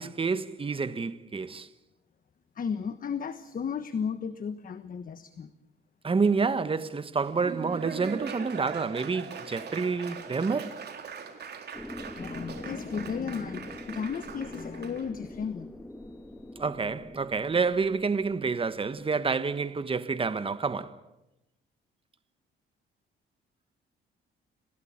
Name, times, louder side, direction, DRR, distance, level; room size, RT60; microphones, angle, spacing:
voice 1, 0.0-1.7 6.0-10.8 16.6-21.0, right 4 dB, 25° right, 1.3 m, -28 dB
voice 2, 2.6-5.5 10.0-10.1 12.2-15.7 16.0-16.2, left 6 dB, 45° left, 1.3 m, -34 dB
Laughter / Applause, 7.2-15.0, right 6 dB, 55° right, 3.9 m, -41 dB
sound 1, 11.7-19.1, left 1 dB, 10° left, 1.7 m, -44 dB
27.0 x 17.0 x 8.8 m
cardioid pair, 90°, 20 cm